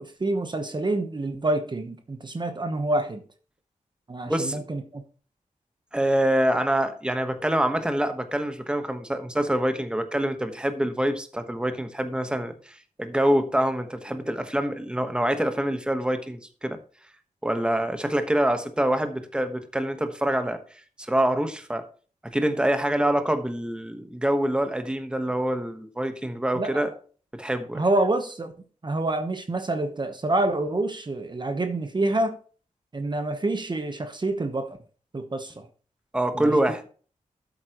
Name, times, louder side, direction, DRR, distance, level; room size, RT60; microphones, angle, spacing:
voice 1, 0.0-3.2 4.1-5.0 26.5-26.8 27.7-28.5 28.8-32.4 32.9-34.8 35.1-35.6 36.3-36.6, right 2 dB, 35° right, 7 dB, 1.0 m, -27 dB
voice 2, 4.3-4.6 5.9-16.8 17.4-20.6 21.0-21.8 22.2-26.9 27.3-27.8 36.1-36.8, right 1 dB, 5° right, 7 dB, 1.2 m, -25 dB
13.0 x 8.0 x 3.0 m, 0.40 s
wide cardioid pair, 115°, 13 cm